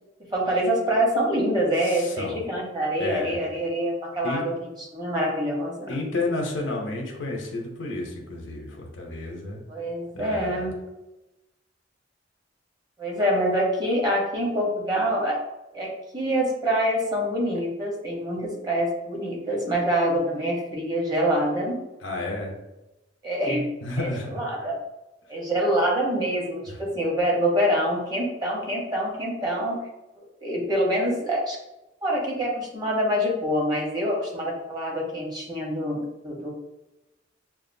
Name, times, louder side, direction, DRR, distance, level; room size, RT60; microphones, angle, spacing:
voice 1, 0.3-5.9 9.7-10.8 13.0-15.4 15.7-21.8 23.2-23.7 24.0-24.8 25.3-29.8 30.2-31.6 32.0-36.5, equal, 20° right, -2 dB, 0.9 m, -25 dB
voice 2, 1.8-2.4 3.0-3.5 4.2-4.4 5.9-9.6 10.1-10.7 22.0-22.5 23.8-24.4 26.7-26.8, left 2 dB, 70° left, 0 dB, 0.7 m, -31 dB
5.8 x 2.4 x 2.6 m, 0.98 s
head